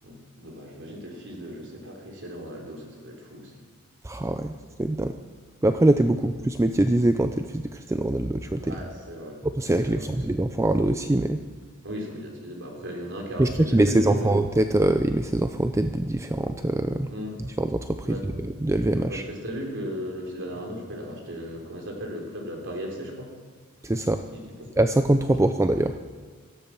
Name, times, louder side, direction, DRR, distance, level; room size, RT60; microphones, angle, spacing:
voice 1, 0.0-3.7 6.2-6.3 8.6-9.4 9.8-10.1 11.8-14.3 17.1-17.6 18.0-18.4 19.0-23.3 24.3-24.7, equal, 60° right, 1 dB, 3.6 m, -37 dB
voice 2, 4.0-4.5 4.8-5.1 5.6-8.7 9.6-11.4 13.4-17.1 17.6-18.2 18.6-19.2 23.8-24.2 24.8-25.9, right 1 dB, 15° right, 8 dB, 0.5 m, -23 dB
17.5 x 13.5 x 6.0 m, 1.5 s
head